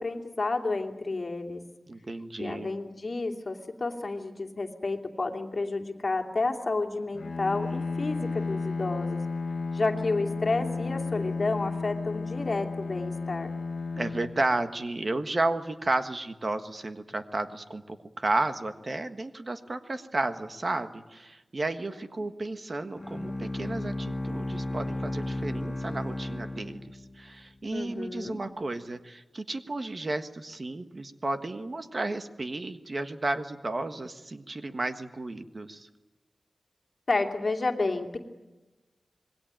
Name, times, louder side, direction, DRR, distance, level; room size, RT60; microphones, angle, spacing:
voice 1, 0.0-1.6 2.4-9.2 9.7-13.5 21.9-22.0 27.7-28.4 37.1-38.2, left 3 dB, 45° left, 3 dB, 2.7 m, -30 dB
voice 2, 1.9-2.7 14.0-26.8 27.2-35.9, right 2 dB, 40° right, 8 dB, 1.5 m, -32 dB
Bowed string instrument, 7.1-15.1, left 4 dB, 80° left, 1.2 m, -33 dB
Bowed string instrument 2, 23.0-27.4, left 1 dB, 10° left, 5.6 m, -34 dB
27.0 x 21.5 x 9.0 m, 1.1 s
wide cardioid pair, 115°, 0 cm